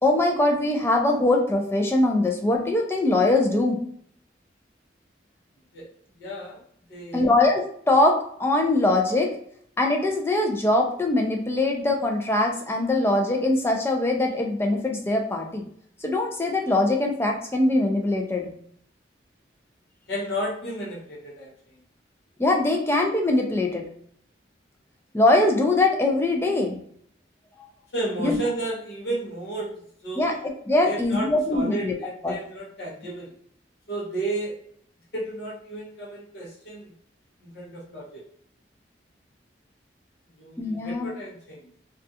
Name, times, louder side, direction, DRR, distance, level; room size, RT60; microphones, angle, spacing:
voice 1, 0.0-3.8 7.1-9.4 9.8-15.7 16.0-18.5 22.4-23.9 25.1-26.8 28.2-28.4 30.2-31.9 32.2-32.4 40.6-41.1, left 2 dB, 15° left, 2 dB, 0.4 m, -22 dB
voice 2, 6.2-6.6 6.9-7.3 20.1-21.5 27.9-30.4 30.8-33.4 33.9-34.6 35.1-36.9 37.4-38.2 40.4-41.7, right 1 dB, 60° left, -3 dB, 0.7 m, -33 dB
2.3 x 2.3 x 2.6 m, 0.64 s
head